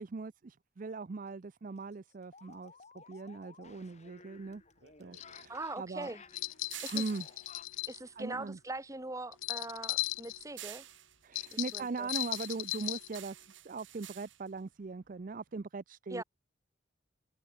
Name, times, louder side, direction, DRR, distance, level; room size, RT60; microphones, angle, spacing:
voice 1, 0.0-4.6 5.0-6.1 6.6-7.3 8.2-8.6 11.2-16.2, right 4 dB, 45° right, 0.5 m, -40 dB
sound 1, 0.9-1.0 1.3-1.4 1.7-7.8, left 4 dB, 35° left, 2.1 m, -56 dB
sound 2, 4.3-8.8 9.2-15.6, right 13 dB, 75° right, 1.6 m, -52 dB
sound 3, 5.1-5.4 6.3-8.0 9.3-10.4 11.3-13.2, left 18 dB, 85° left, 0.6 m, -37 dB
voice 2, 5.5-6.2 6.8-6.9 7.9-10.9 11.7-12.1 16.1-16.2, right 2 dB, 15° right, 1.9 m, -41 dB
head